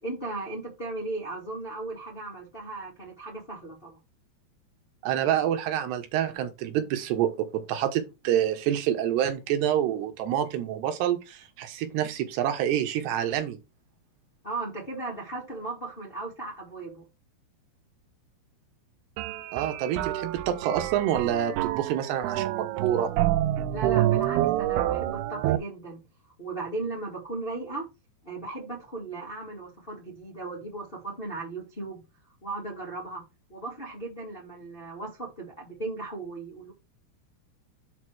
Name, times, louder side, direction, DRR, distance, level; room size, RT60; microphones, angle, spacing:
voice 1, 0.0-4.0 14.4-17.1 23.7-26.0 26.4-27.9 28.2-32.0 32.4-33.2 33.5-36.7, right 3 dB, 80° left, 0.5 m, -36 dB
voice 2, 5.0-13.6 19.5-23.1, right 10 dB, 75° right, 3.1 m, -27 dB
sound 1, 19.2-25.6, right 14 dB, 90° right, 2.3 m, -27 dB
8.0 x 3.1 x 6.2 m
omnidirectional pair, 5.1 m